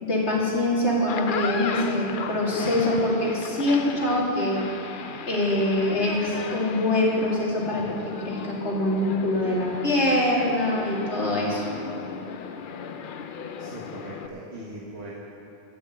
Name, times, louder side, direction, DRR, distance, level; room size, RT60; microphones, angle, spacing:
voice 1, 0.0-4.6 5.3-11.6, left 1 dB, 75° left, -4 dB, 2.8 m, -24 dB
sound 1, 0.9-14.3, left 6 dB, 55° left, 0.7 m, -36 dB
voice 2, 13.6-15.1, right 1 dB, 70° right, -6 dB, 1.8 m, -40 dB
12.5 x 9.0 x 7.9 m, 2.8 s
omnidirectional pair, 1.2 m